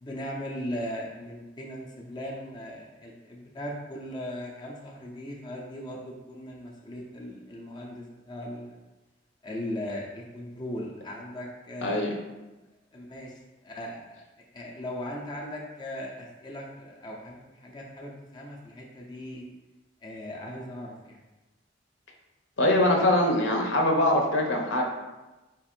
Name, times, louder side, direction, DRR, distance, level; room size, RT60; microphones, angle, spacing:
voice 1, 0.0-8.8 9.4-12.1 12.9-13.3 13.6-14.2 14.5-19.4 20.0-21.2, left 1 dB, 25° left, -2 dB, 0.6 m, -38 dB
voice 2, 11.8-12.1 22.6-24.8, left 1 dB, 70° left, 1 dB, 0.8 m, -23 dB
4.3 x 2.6 x 4.3 m, 1.1 s
head